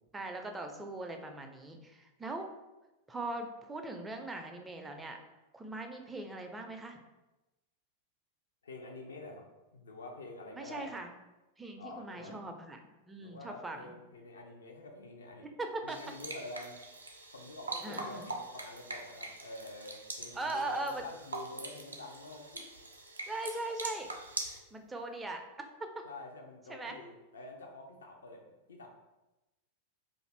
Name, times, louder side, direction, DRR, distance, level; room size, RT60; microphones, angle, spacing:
voice 1, 0.1-2.5 3.1-5.2 5.5-7.0 10.5-11.1 11.6-13.9 15.6-16.0 17.8-18.3 20.3-21.0 23.3-24.1 24.4-25.4 26.7-27.0, right 2 dB, 10° right, 4 dB, 0.4 m, -40 dB
voice 2, 8.6-9.5 9.7-10.9 11.8-12.4 13.2-15.5 15.8-16.8 17.3-22.7 26.0-28.9, left 2 dB, 70° left, 2 dB, 0.4 m, -47 dB
sound 1, 15.9-24.6, right 2 dB, 80° right, 0.4 m, -43 dB
2.5 x 2.4 x 3.2 m, 1.0 s
figure-of-eight pair, 90°, 0 cm